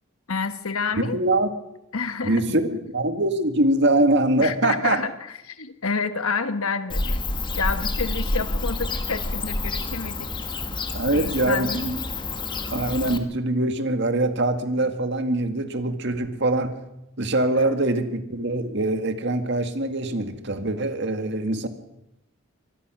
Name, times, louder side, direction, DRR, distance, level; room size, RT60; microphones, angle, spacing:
voice 1, 0.3-1.2 1.9-2.6 4.4-5.1 5.4-7.2 7.5-10.5 11.1-11.8, left 4 dB, 80° left, 10 dB, 1.4 m, -29 dB
voice 2, 1.0-1.5 2.2-5.0 10.9-12.0 12.7-16.7 17.2-21.7, right 2 dB, 55° right, 8 dB, 1.9 m, -23 dB
Bird / Cricket, 6.9-13.2, left 2 dB, 20° left, 1.4 m, -28 dB
24.5 x 20.0 x 6.3 m, 0.88 s
head